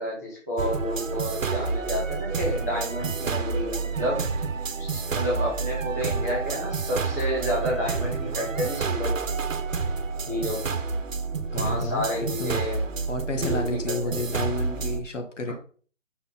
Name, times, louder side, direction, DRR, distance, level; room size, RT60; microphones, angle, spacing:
voice 1, 0.0-4.2 4.8-9.4 10.3-10.8 11.5-12.8 13.3-14.2 15.5-15.6, equal, 15° left, -5 dB, 1.4 m, -30 dB
sound 1, 0.6-15.0, right 4 dB, 85° right, 1.1 m, -29 dB
voice 2, 11.5-12.1 12.4-12.6 13.1-15.5, left 2 dB, 70° left, 4 dB, 1.8 m, -31 dB
5.7 x 5.5 x 4.0 m, 0.42 s
hypercardioid pair, 180°, 38 cm